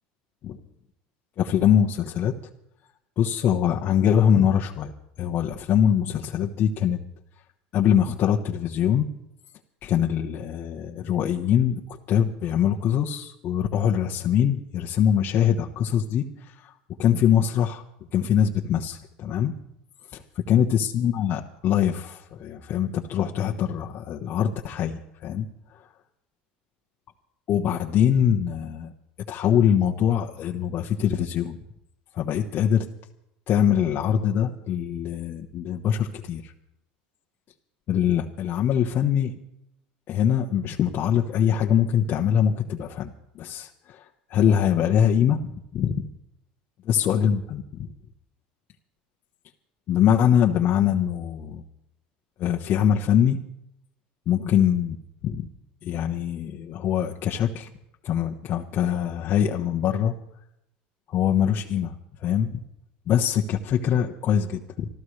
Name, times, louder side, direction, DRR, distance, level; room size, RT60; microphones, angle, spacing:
voice 1, 1.4-2.3 3.2-4.9 5.2-7.0 7.7-9.1 9.8-11.8 12.1-16.7 17.0-17.8 18.1-19.6 20.1-20.2 20.5-25.5 27.5-28.9 29.3-31.6 32.1-32.9 33.5-36.5 37.9-39.3 40.1-43.1 43.3-44.0 44.3-46.1 46.9-47.9 49.9-51.6 52.4-53.4 54.3-55.0 55.2-55.4 55.8-57.7 58.0-60.1 61.1-61.9 62.2-62.6 63.1-64.9, left 9 dB, 50° left, 1 dB, 1.1 m, -23 dB
26.5 x 13.5 x 3.3 m, 0.81 s
supercardioid pair, 95°, 4 cm